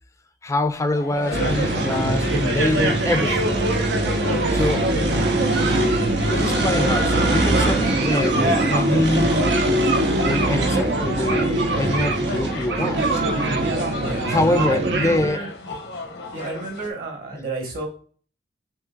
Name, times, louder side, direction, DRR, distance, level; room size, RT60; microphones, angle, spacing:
voice 1, 0.4-3.6 4.5-4.9 6.3-9.5 10.3-13.1 14.3-15.4, left 2 dB, 15° left, 0.4 m, -24 dB
sound 1, 0.8-16.9, left 2 dB, 90° left, 1.0 m, -34 dB
sound 2, 1.3-15.3, right 2 dB, 80° right, 0.9 m, -21 dB
voice 2, 13.9-15.5 16.3-17.9, right 3 dB, 55° right, 1.4 m, -31 dB
5.7 x 2.8 x 2.3 m
head